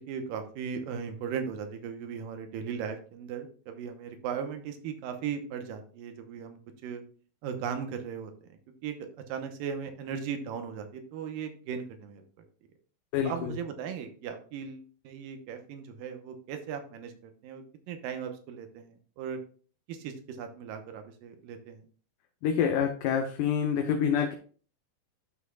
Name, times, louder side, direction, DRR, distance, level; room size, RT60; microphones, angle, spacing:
voice 1, 0.0-7.0 7.4-8.3 8.8-9.0 9.3-12.3 13.2-19.4 19.9-21.8, right 7 dB, 80° right, 7 dB, 2.6 m, -37 dB
voice 2, 13.1-13.6 22.4-24.3, left 8 dB, 75° left, 4 dB, 2.2 m, -27 dB
12.5 x 5.8 x 2.3 m, 0.41 s
omnidirectional pair, 4.1 m